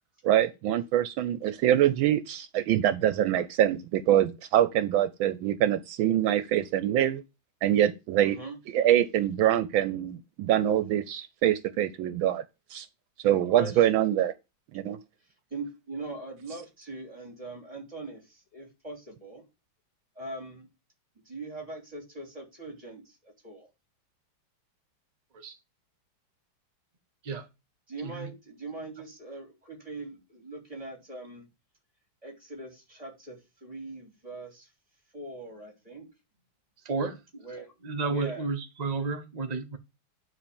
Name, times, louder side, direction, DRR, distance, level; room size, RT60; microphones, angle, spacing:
voice 1, 0.2-7.2 7.6-8.4 8.7-12.4 12.7-12.9 13.2-14.3 14.7-15.0, right 11 dB, 80° right, 1.4 m, -24 dB
voice 2, 8.2-8.6 13.6-14.1 15.5-19.4 20.1-20.7 21.2-23.7 27.9-31.5 32.2-34.7 35.1-36.1 37.4-37.7 38.1-38.5, right 2 dB, 15° right, 3.1 m, -41 dB
voice 3, 36.8-37.2 37.8-39.8, right 4 dB, 50° right, 0.5 m, -31 dB
9.9 x 3.3 x 7.0 m
omnidirectional pair, 2.2 m